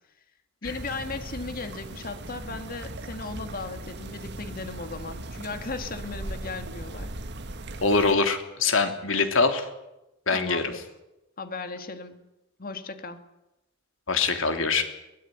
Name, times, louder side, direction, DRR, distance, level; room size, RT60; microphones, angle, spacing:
voice 1, 0.6-7.1 10.3-10.8 11.4-12.2 12.6-13.2, left 4 dB, 50° left, 8 dB, 2.2 m, -36 dB
sound 1, 0.6-8.1, right 2 dB, 60° right, 1.7 m, -38 dB
voice 2, 7.8-9.7 10.3-10.7 14.1-14.8, left 4 dB, 80° left, 6 dB, 3.1 m, -23 dB
23.0 x 19.0 x 9.4 m, 0.95 s
head